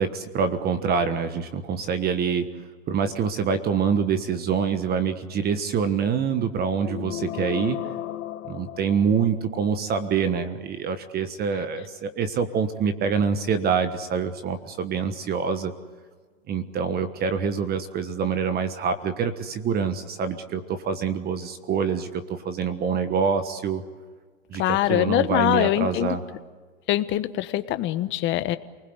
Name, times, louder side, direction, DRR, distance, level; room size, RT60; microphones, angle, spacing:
voice 1, 0.0-2.5 2.9-7.8 8.4-15.7 16.5-23.8 24.5-26.2, right 6 dB, 25° right, 9 dB, 1.4 m, -26 dB
sound 1, 6.8-9.5, left 12 dB, 70° left, 1.9 m, -34 dB
voice 2, 24.6-26.2 26.9-28.6, left 14 dB, 30° left, 11 dB, 1.2 m, -23 dB
29.0 x 20.5 x 8.1 m, 1.5 s
hypercardioid pair, 135°, 39 cm